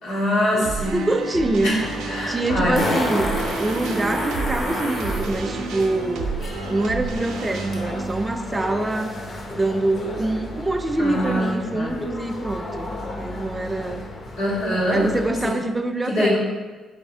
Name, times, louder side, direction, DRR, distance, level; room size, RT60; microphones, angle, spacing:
voice 1, 0.0-0.9 1.6-1.8 2.1-2.9 11.0-11.9 14.4-15.1 15.4-15.5 16.1-16.4, left 1 dB, 85° left, -6 dB, 1.3 m, -23 dB
sound 1, 0.6-9.8, right 5 dB, 90° right, 0.4 m, -31 dB
voice 2, 0.9-1.7 2.3-3.3 3.6-6.4 6.7-9.2 9.5-12.9 13.2-14.1 14.9-16.4, right 2 dB, 20° right, 6 dB, 0.3 m, -25 dB
Fart, 1.7-1.8 2.8-5.3 7.7-7.8, left 1 dB, 70° left, 1.1 m, -27 dB
sound 2, 1.8-15.5, left 2 dB, 45° left, 0.6 m, -35 dB
4.1 x 4.0 x 2.7 m, 1.3 s
cardioid pair, 90°, 0 cm